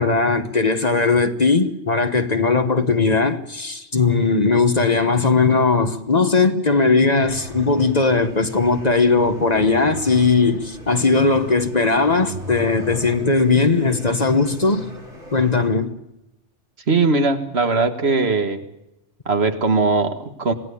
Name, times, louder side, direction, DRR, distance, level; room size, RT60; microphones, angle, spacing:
voice 1, 0.0-14.9 15.3-15.9, left 4 dB, 35° left, 1.2 m, -18 dB
sound 1, 7.3-15.7, right 1 dB, 80° right, 4.5 m, -38 dB
voice 2, 16.9-18.6 19.3-20.5, right 3 dB, 65° right, 1.9 m, -19 dB
26.5 x 17.0 x 8.5 m
omnidirectional pair, 1.2 m